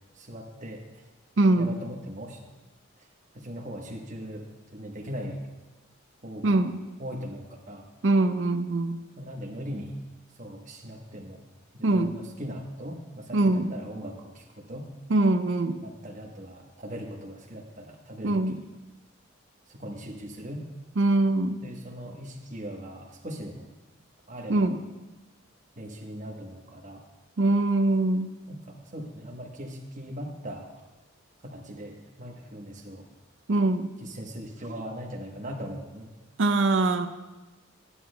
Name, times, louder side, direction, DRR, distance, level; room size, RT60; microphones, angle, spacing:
voice 1, 0.1-1.0 1.6-2.4 3.3-5.4 6.2-6.7 7.0-7.9 9.2-9.9 10.3-11.4 11.7-14.9 15.8-18.6 19.7-20.7 21.6-23.7 24.3-24.7 25.8-27.0 28.5-30.9 31.4-33.1 34.0-36.1, equal, 35° right, 1 dB, 1.1 m, -39 dB
voice 2, 1.4-1.8 6.4-6.8 8.0-9.0 11.8-12.2 13.3-13.7 15.1-15.8 18.2-18.6 21.0-21.6 24.5-24.8 27.4-28.3 33.5-33.9 36.4-37.1, right 2 dB, 60° right, 8 dB, 0.5 m, -23 dB
13.0 x 9.8 x 2.2 m, 1.1 s
head